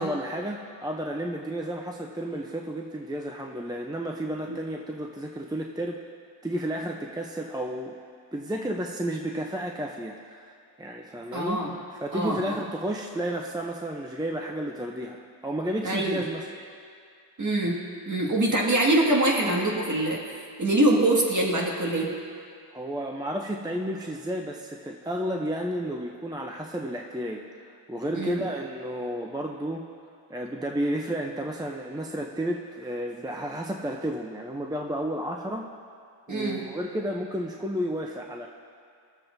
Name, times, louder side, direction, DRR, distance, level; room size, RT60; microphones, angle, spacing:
voice 1, 0.0-6.0 6.4-8.0 8.3-16.5 22.7-29.9 30.3-35.7 36.3-38.5, right 1 dB, 10° right, 1 dB, 0.6 m, -32 dB
voice 2, 11.3-11.7 12.1-12.6 15.8-16.3 17.4-17.8 18.1-20.2 20.6-22.1 28.1-28.5 36.3-36.6, right 1 dB, 40° right, -2 dB, 2.0 m, -24 dB
20.5 x 7.3 x 2.7 m, 2.3 s
cardioid pair, 85°, 45 cm